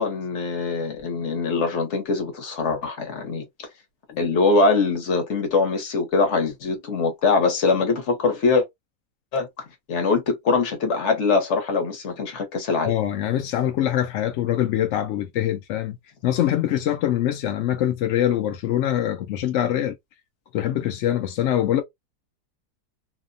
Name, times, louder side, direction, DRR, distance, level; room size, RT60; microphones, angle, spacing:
voice 1, 0.0-3.4 4.2-8.6 9.3-9.5 9.9-12.9, left 4 dB, 50° left, 1.0 m, -22 dB
voice 2, 12.8-16.0 16.2-19.9 20.5-21.8, left 11 dB, 75° left, 0.6 m, -23 dB
2.8 x 2.1 x 2.5 m
omnidirectional pair, 1.7 m